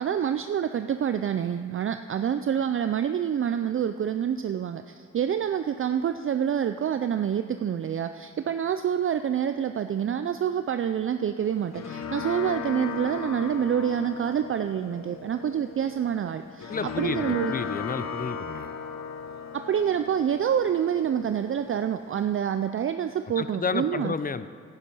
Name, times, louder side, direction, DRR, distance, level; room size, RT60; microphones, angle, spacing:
voice 1, 0.0-17.5 19.5-24.1, right 9 dB, 45° right, 9 dB, 0.4 m, -27 dB
sound 1, 11.4-22.4, left 6 dB, 60° left, 0.9 m, -37 dB
voice 2, 16.7-18.7 23.4-24.5, left 5 dB, 30° left, 13 dB, 0.5 m, -31 dB
11.5 x 10.0 x 5.6 m, 2.3 s
cardioid pair, 70°, 30 cm